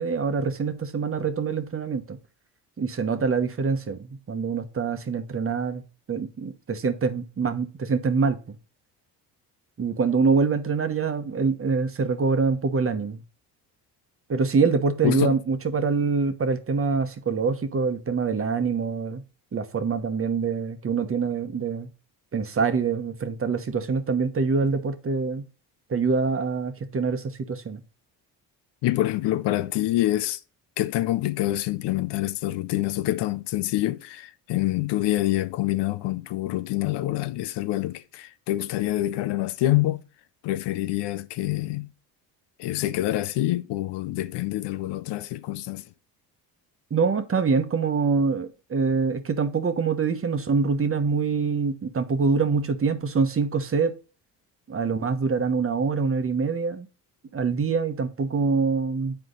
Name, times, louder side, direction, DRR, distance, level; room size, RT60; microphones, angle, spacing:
voice 1, 0.0-2.2 2.8-5.8 6.1-8.6 9.8-13.2 14.3-19.2 19.5-21.9 22.3-25.5 25.9-27.8 46.9-53.9 54.7-56.9 57.3-59.2, right 5 dB, 30° right, 1.1 m, -25 dB
voice 2, 15.0-15.3 28.8-30.4 30.8-40.0 40.4-41.9 42.6-45.8, left 15 dB, 80° left, 0.6 m, -26 dB
8.0 x 4.5 x 3.9 m
cardioid pair, 85°, 41 cm